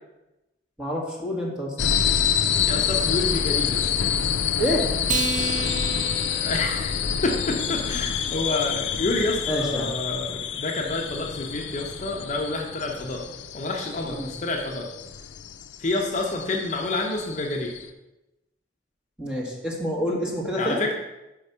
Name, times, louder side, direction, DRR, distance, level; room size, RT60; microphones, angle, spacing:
voice 1, 0.8-1.7 4.6-4.9 9.5-9.9 14.0-14.3 19.2-20.8, equal, 5° right, -4 dB, 1.5 m, -27 dB
sound 1, 1.8-17.9, left 8 dB, 75° left, 0.4 m, -27 dB
voice 2, 2.6-3.9 6.3-6.9 7.2-13.2 13.5-14.9 15.8-17.7 20.6-20.9, left 2 dB, 40° left, 0 dB, 0.7 m, -28 dB
Acoustic guitar, 5.0-7.7, right 5 dB, 45° right, 0.5 m, -32 dB
5.3 x 4.8 x 5.5 m, 0.98 s
head